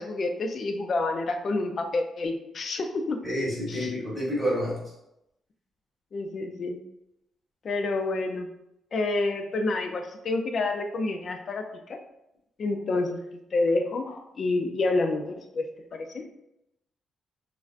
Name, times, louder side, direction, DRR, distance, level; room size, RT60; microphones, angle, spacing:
voice 1, 0.0-3.2 3.7-3.9 6.1-6.8 7.6-8.5 8.9-12.0 12.6-13.2 13.5-15.6 15.9-16.3, left 2 dB, 40° left, 5 dB, 0.3 m, -28 dB
voice 2, 3.2-4.8, equal, 5° left, -7 dB, 1.2 m, -28 dB
3.2 x 2.5 x 2.4 m, 0.85 s
cardioid pair, 155°, 0 cm